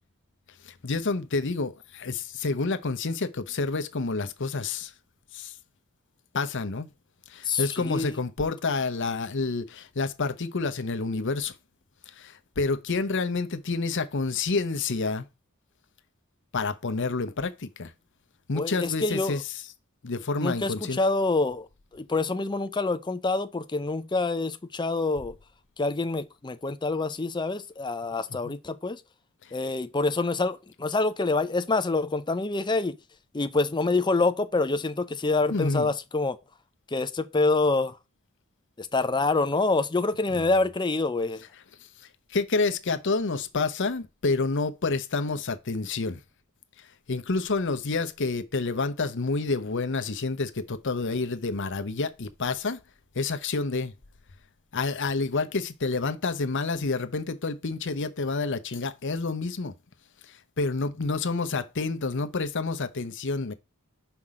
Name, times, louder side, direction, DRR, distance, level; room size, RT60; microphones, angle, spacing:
voice 1, 0.6-4.9 5.3-5.5 6.3-6.9 7.3-11.5 12.2-15.3 16.5-17.9 18.5-19.5 20.0-21.0 28.4-28.5 35.5-35.9 40.3-40.4 42.3-46.2 47.1-52.8 53.1-53.9 54.7-59.7 60.6-63.5, left 3 dB, 60° left, 0.8 m, -28 dB
voice 2, 7.5-8.2 18.5-19.4 20.4-21.7 21.9-25.3 25.8-29.0 29.5-33.0 33.3-36.4 36.9-37.9 38.8-41.4, left 3 dB, 20° left, 0.6 m, -26 dB
5.8 x 4.5 x 4.9 m
head